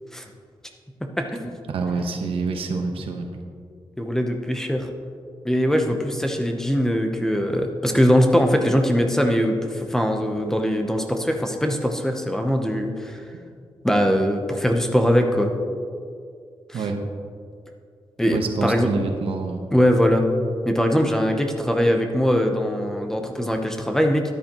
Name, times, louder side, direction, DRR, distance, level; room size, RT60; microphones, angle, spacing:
voice 1, 1.0-1.5 4.0-4.9 5.4-13.2 13.8-15.5 16.7-16.9 18.2-18.9 19.7-20.2 20.6-24.2, equal, 5° left, 4 dB, 0.8 m, -21 dB
voice 2, 1.7-3.3 16.7-17.0 18.3-19.6, right 4 dB, 85° right, 4 dB, 1.1 m, -26 dB
13.0 x 10.5 x 3.0 m, 2.2 s
wide cardioid pair, 155°, 9 cm